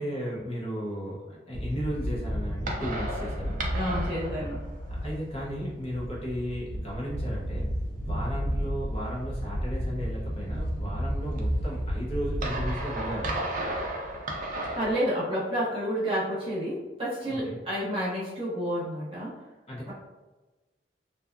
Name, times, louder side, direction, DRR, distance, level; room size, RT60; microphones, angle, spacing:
voice 1, 0.0-3.6 5.0-7.7 8.0-13.7 17.3-17.6 19.7-19.9, equal, 35° left, -5 dB, 0.6 m, -35 dB
sound 1, 1.5-14.9, equal, 50° right, 0.4 m, -32 dB
voice 2, 3.7-4.6 14.7-19.4 19.9-20.0, equal, 30° right, -7 dB, 0.9 m, -30 dB
2.6 x 2.3 x 2.3 m, 1.2 s
head